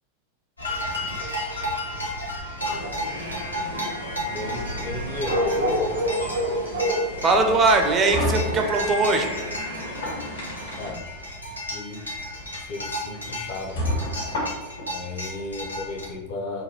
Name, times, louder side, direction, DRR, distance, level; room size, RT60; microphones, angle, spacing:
sound 1, 0.6-16.1, left 1 dB, 85° left, 0.7 m, -33 dB
sound 2, 2.6-10.9, equal, 75° right, 0.7 m, -30 dB
voice 1, 4.3-5.9 10.8-11.0 11.7-12.0 12.6-14.0 14.9-16.6, left 3 dB, 50° left, 2 dB, 0.6 m, -33 dB
voice 2, 7.2-9.3, right 3 dB, 25° right, 4 dB, 0.4 m, -20 dB
sound 3, 7.6-9.3 9.8-10.9 11.9-12.1 12.5-12.6 13.1-13.2 13.8-14.9, left 1 dB, 65° left, 1.3 m, -29 dB
2.9 x 2.3 x 2.9 m, 1.1 s
figure-of-eight pair, 90°, 0 cm